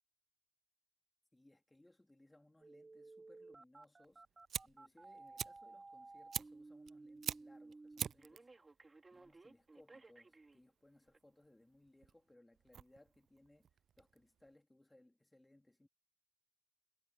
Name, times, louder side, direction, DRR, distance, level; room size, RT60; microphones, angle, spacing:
voice 1, 1.3-4.2 4.6-8.5 9.1-13.7 14.0-15.9, left 1 dB, 10° left, 3.3 m, -67 dB
Telephone, 2.6-10.6 11.1-11.2, right 3 dB, 25° right, 3.0 m, -56 dB
Fire, 4.1-14.5, right 8 dB, 55° right, 0.3 m, -47 dB
cardioid pair, 90°, 0 cm